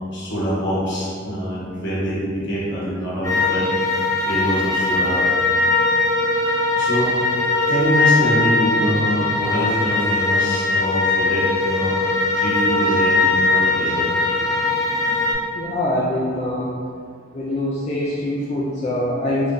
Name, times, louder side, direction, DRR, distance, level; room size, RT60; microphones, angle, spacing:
voice 1, 0.1-5.2 6.8-7.2 7.7-12.0 12.3-14.1, equal, 65° left, -7 dB, 1.2 m, -24 dB
sound 1, 3.2-15.3, left 3 dB, 15° left, 0.8 m, -20 dB
voice 2, 15.5-16.7 17.3-19.5, left 1 dB, 35° left, -6 dB, 0.3 m, -24 dB
3.7 x 3.2 x 2.6 m, 2.2 s
head